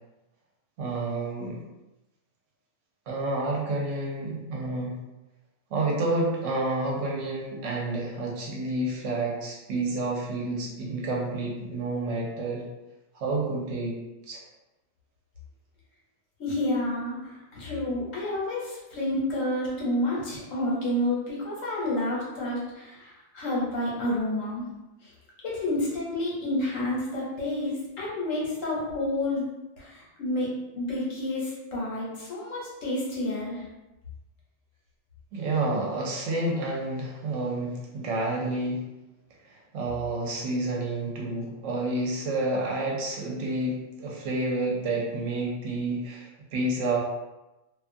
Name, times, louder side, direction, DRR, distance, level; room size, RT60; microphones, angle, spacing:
voice 1, 0.8-1.6 3.1-5.0 5.7-12.6 13.1-13.9 14.3-14.4 35.3-38.8 39.4-47.0, right 2 dB, 70° right, -2 dB, 0.9 m, -29 dB
voice 2, 16.4-24.6 25.0-25.1 25.4-29.5 29.8-33.6, left 1 dB, 75° left, -5 dB, 1.2 m, -29 dB
2.5 x 2.3 x 2.5 m, 1.0 s
omnidirectional pair, 1.4 m